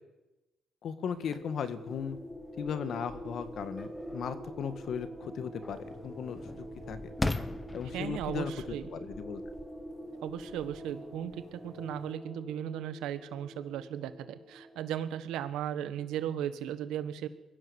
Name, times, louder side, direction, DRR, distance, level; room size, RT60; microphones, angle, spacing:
voice 1, 0.8-2.2 2.6-7.0 7.7-9.4, left 7 dB, 65° left, 11 dB, 1.8 m, -37 dB
sound 1, 0.9-15.3, right 1 dB, 5° right, 5.4 m, -45 dB
sound 2, 1.2-12.1, left 2 dB, 15° left, 1.3 m, -42 dB
voice 2, 7.9-8.9 10.2-17.3, right 10 dB, 90° right, 11 dB, 1.5 m, -36 dB
22.5 x 16.0 x 7.2 m, 1.0 s
cardioid pair, 90°, 0 cm